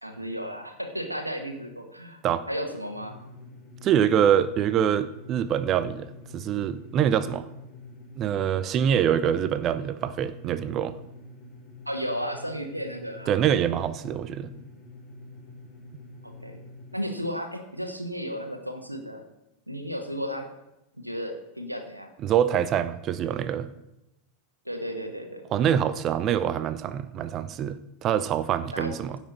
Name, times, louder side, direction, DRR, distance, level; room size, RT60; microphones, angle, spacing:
voice 1, 0.0-2.2 2.5-3.2 11.9-13.3 16.2-16.6 16.9-19.2 19.7-20.5 21.0-22.1 24.6-25.4 28.7-28.9, equal, 90° right, 5 dB, 1.3 m, -34 dB
sound 1, 2.9-17.0, left 2 dB, 25° left, 3.5 m, -46 dB
voice 2, 3.8-7.5 8.2-11.0 13.3-14.5 22.2-23.7 25.5-29.2, right 9 dB, 30° right, 14 dB, 0.5 m, -25 dB
16.0 x 6.1 x 4.1 m, 0.89 s
figure-of-eight pair, 90°, 0 cm